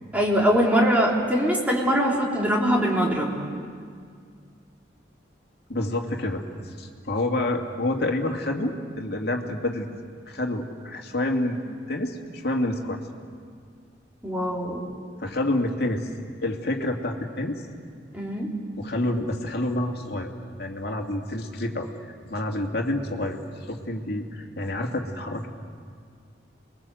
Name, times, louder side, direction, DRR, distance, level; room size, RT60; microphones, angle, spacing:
voice 1, 0.1-3.3 14.2-14.9 18.1-18.5, equal, 10° right, -2 dB, 3.6 m, -22 dB
voice 2, 5.7-6.4 6.8-9.9 10.3-13.0 15.2-16.1 16.4-17.6 18.8-20.3 20.6-23.4 23.7-25.5, left 1 dB, 60° left, 1 dB, 2.5 m, -28 dB
29.0 x 22.0 x 7.9 m, 2.1 s
head